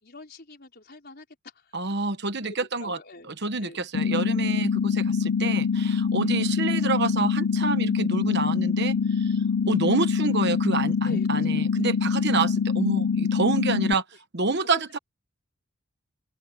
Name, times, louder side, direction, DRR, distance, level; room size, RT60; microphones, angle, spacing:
voice 1, 0.0-1.7 2.4-3.3 3.6-3.8 6.1-6.4 11.0-11.9 14.7-14.8, left 2 dB, 45° left, 5.0 m, -45 dB
voice 2, 1.7-3.0 3.3-9.4 9.7-14.0 14.3-15.0, right 3 dB, 50° right, 1.2 m, -28 dB
sound 1, 3.9-13.9, left 6 dB, 80° left, 0.5 m, -24 dB
open air
head